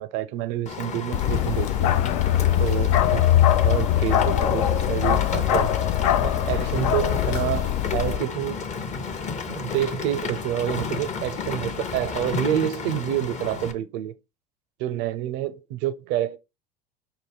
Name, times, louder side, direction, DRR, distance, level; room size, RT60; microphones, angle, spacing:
voice 1, 0.0-1.9 2.6-3.3 3.6-5.7 6.2-8.6 9.5-14.1 14.8-16.4, right 12 dB, 60° right, 0.5 m, -28 dB
Rain, 0.7-13.7, left 5 dB, 35° left, 0.7 m, -32 dB
Bark, 1.1-8.2, left 11 dB, 70° left, 0.4 m, -22 dB
5.7 x 2.1 x 3.3 m
hypercardioid pair, 75°, 21 cm